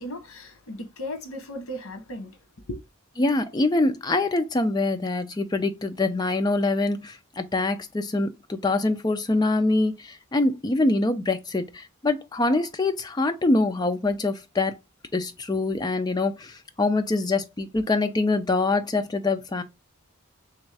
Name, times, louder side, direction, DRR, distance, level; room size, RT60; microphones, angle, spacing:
voice 1, 0.0-2.3 2.7-2.8, left 1 dB, 85° left, 1.0 m, -36 dB
voice 2, 3.2-14.7 15.1-19.6, left 2 dB, 20° left, 0.4 m, -24 dB
3.5 x 3.1 x 3.3 m
head